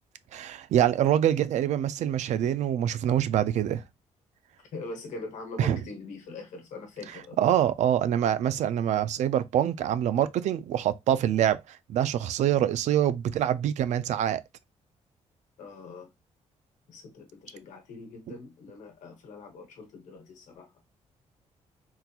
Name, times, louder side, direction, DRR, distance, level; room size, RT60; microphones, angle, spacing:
voice 1, 0.3-3.8 5.6-5.8 7.4-14.4, right 10 dB, 70° right, 0.4 m, -25 dB
voice 2, 4.7-7.4 15.6-16.1 16.9-20.7, left 3 dB, 90° left, 1.1 m, -42 dB
3.7 x 2.4 x 2.8 m
cardioid pair, 140°, 12 cm